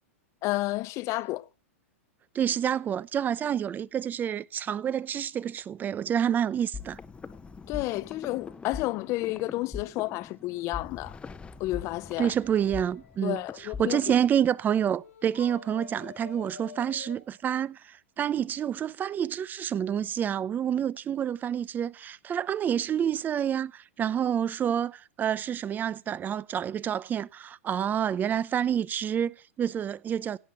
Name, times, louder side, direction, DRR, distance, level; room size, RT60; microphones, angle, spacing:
voice 1, 0.4-1.5 7.7-11.2 11.6-12.3 13.2-14.0, left 19 dB, 40° left, 0.6 m, -31 dB
voice 2, 2.3-7.0 12.2-30.4, right 9 dB, 25° right, 0.7 m, -28 dB
sound 1, 6.7-14.3, left 5 dB, 15° left, 1.0 m, -42 dB
sound 2, 12.2-13.6 15.0-17.2, left 8 dB, 90° left, 2.9 m, -48 dB
16.5 x 7.5 x 8.8 m
hypercardioid pair, 115°, 8 cm